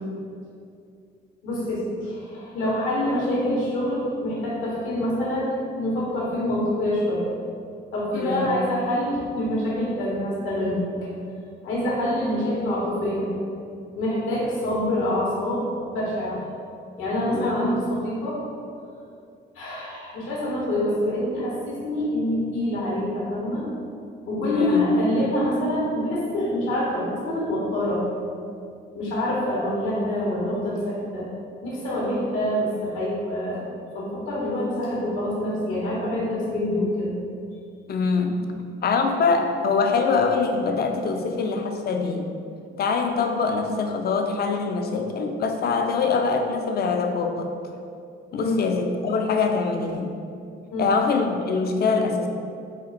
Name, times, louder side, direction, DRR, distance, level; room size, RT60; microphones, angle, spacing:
voice 1, 1.4-7.3 7.9-10.9 11.6-13.3 14.0-16.4 17.0-18.4 19.5-23.6 24.3-28.0 28.9-31.3 31.6-33.6 33.9-37.1 37.5-37.6 48.3-48.6 50.7-50.9, left 1 dB, 90° left, -5 dB, 1.3 m, -26 dB
voice 2, 8.1-8.5 17.3-17.5 24.4-24.8 37.9-38.4 38.8-42.3 42.8-47.5 48.3-50.1 50.8-52.3, left 4 dB, 50° left, 4 dB, 0.5 m, -24 dB
4.3 x 2.4 x 4.1 m, 2.4 s
cardioid pair, 90°, 20 cm